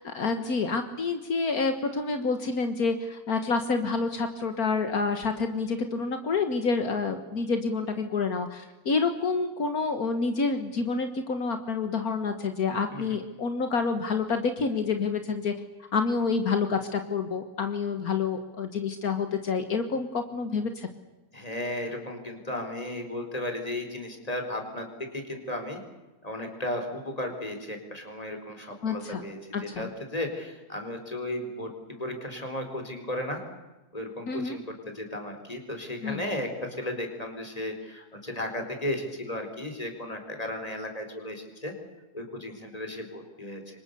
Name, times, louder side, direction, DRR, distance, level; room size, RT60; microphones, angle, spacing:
voice 1, 0.0-15.5 15.9-20.9 28.8-29.2 29.5-29.9 34.3-34.6 36.0-36.2, left 4 dB, 75° left, 7 dB, 2.0 m, -28 dB
voice 2, 21.3-24.9 25.1-25.8 26.2-31.7 32.0-33.4 33.9-34.6 34.9-36.5 36.8-41.7 42.1-43.8, left 1 dB, 25° left, 4 dB, 4.8 m, -35 dB
28.5 x 25.0 x 6.9 m, 1.1 s
omnidirectional pair, 1.6 m